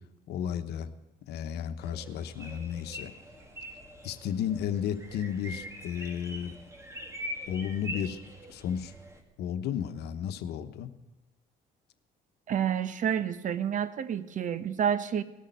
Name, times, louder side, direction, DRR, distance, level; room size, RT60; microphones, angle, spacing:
voice 1, 0.3-0.9 1.3-3.1 4.0-6.6 7.5-8.2 8.5-8.9 9.4-10.9, left 9 dB, 75° left, 10 dB, 1.1 m, -33 dB
sound 1, 1.8-9.2, equal, 15° right, 2.2 m, -43 dB
voice 2, 12.5-15.2, right 8 dB, 50° right, 13 dB, 1.0 m, -29 dB
18.5 x 6.6 x 9.2 m, 1.1 s
cardioid pair, 110°, 17 cm